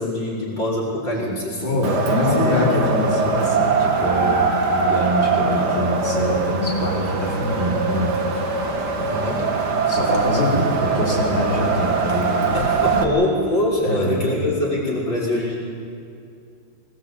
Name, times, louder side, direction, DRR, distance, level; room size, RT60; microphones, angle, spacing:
voice 1, 0.0-1.8 2.1-2.6 9.0-9.4 12.5-15.5, left 1 dB, 75° left, -5 dB, 5.7 m, -24 dB
voice 2, 1.6-4.4 4.7-8.2 8.4-8.7 9.4-12.6 13.8-14.2, left 1 dB, 25° left, -5 dB, 5.0 m, -24 dB
Wind, 1.8-13.0, right 4 dB, 60° right, 2.3 m, -22 dB
23.0 x 19.5 x 8.3 m, 2.4 s
omnidirectional pair, 2.1 m